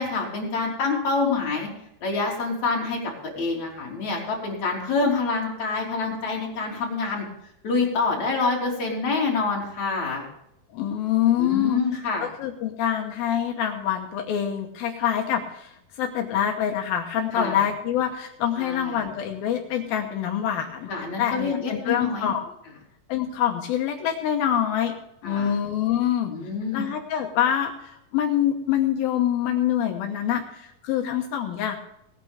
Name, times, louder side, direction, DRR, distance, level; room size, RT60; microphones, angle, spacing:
voice 1, 0.0-1.7 2.0-3.0 3.4-7.3 7.6-10.3 11.4-12.3 17.3-17.6 18.6-19.1 20.9-22.3 25.2-25.5 26.3-26.9, left 4 dB, 50° left, -2 dB, 4.6 m, -26 dB
voice 2, 10.7-11.8 12.2-15.7 16.0-20.9 21.2-22.5 23.1-24.9 25.2-26.3 26.7-31.8, left 10 dB, 75° left, 3 dB, 2.8 m, -25 dB
19.0 x 9.7 x 3.5 m, 0.79 s
omnidirectional pair, 4.3 m